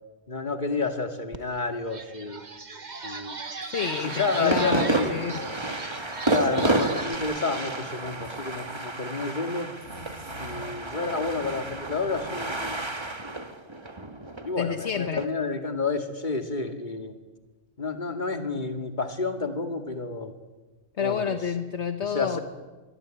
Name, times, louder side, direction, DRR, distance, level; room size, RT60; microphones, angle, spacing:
voice 1, 0.3-2.4 3.0-3.4 4.0-5.6 6.3-9.7 10.4-12.8 14.4-17.1 17.8-20.3 21.0-21.4 22.0-22.4, left 4 dB, 40° left, 6 dB, 2.3 m, -30 dB
sound 1, 1.3-1.4 1.8-7.1, right 4 dB, 40° right, 1.4 m, -38 dB
voice 2, 3.6-5.4 14.6-15.2 21.0-22.4, left 7 dB, 65° left, 8 dB, 1.4 m, -29 dB
sound 2, 3.8-15.3, right 2 dB, 25° right, 1.6 m, -31 dB
sound 3, 7.4-8.9 9.8-10.9 11.2-12.9, right 1 dB, 75° right, 4.3 m, -47 dB
24.5 x 23.5 x 9.1 m, 1.2 s
omnidirectional pair, 1.3 m